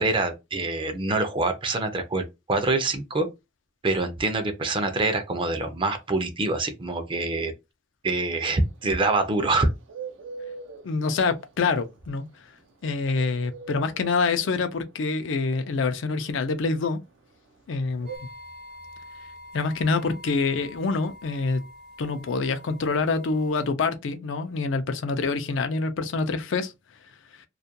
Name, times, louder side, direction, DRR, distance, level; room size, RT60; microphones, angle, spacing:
voice 1, 0.0-3.3 3.8-7.5 8.0-9.7, right 2 dB, 25° right, 0.4 m, -25 dB
Bird, 8.3-18.2, right 5 dB, 80° right, 0.5 m, -41 dB
voice 2, 10.8-12.2 12.8-17.0 17.7-18.1 19.5-21.6 22.0-26.7, left 4 dB, 80° left, 0.4 m, -26 dB
sound 1, 18.1-23.7, left 1 dB, 55° right, 0.9 m, -46 dB
2.3 x 2.1 x 2.7 m
head